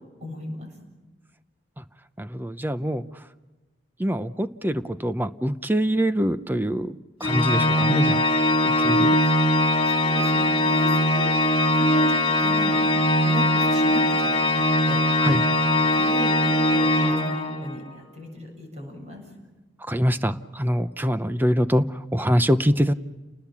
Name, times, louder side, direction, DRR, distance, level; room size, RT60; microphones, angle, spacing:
voice 1, 0.2-0.7 8.9-9.4 9.9-11.3 11.7-15.3 15.5-19.2, left 1 dB, 40° right, 3 dB, 7.5 m, -37 dB
voice 2, 2.2-3.1 4.0-6.9 7.2-8.2 8.6-9.2 15.2-15.4 19.9-22.9, equal, 10° right, 12 dB, 0.7 m, -24 dB
Organ, 7.2-17.8, left 1 dB, 30° left, 3.1 m, -21 dB
29.5 x 20.0 x 7.3 m, 1.2 s
head